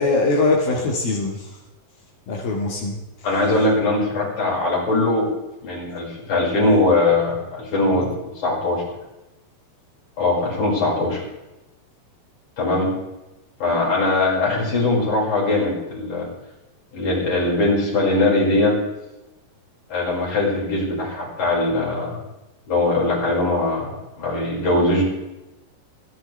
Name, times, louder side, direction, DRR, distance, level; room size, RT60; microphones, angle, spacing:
voice 1, 0.0-1.5 2.3-3.3, left 3 dB, 70° left, -2 dB, 3.7 m, -22 dB
voice 2, 3.2-5.3 5.6-8.1 8.4-8.8 10.2-11.2 12.6-12.9 13.6-16.3 16.9-18.8 19.9-22.2 22.7-25.1, left 2 dB, 50° left, -4 dB, 6.8 m, -21 dB
27.5 x 11.0 x 3.4 m, 0.98 s
omnidirectional pair, 4.4 m